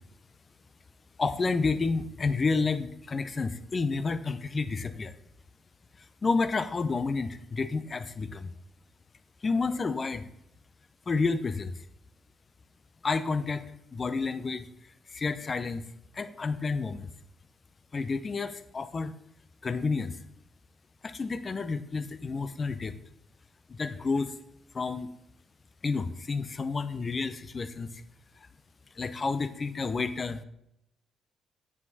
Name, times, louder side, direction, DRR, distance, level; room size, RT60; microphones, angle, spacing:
voice 1, 1.2-5.1 6.0-8.5 9.4-10.3 11.1-11.8 13.0-14.7 15.1-15.9 16.1-17.1 17.9-19.1 19.6-20.2 21.0-22.9 23.7-24.3 24.7-25.1 25.8-28.0 28.9-30.4, left 4 dB, 40° left, 13 dB, 0.7 m, -30 dB
9.5 x 7.5 x 4.1 m, 0.79 s
figure-of-eight pair, 40°, 0 cm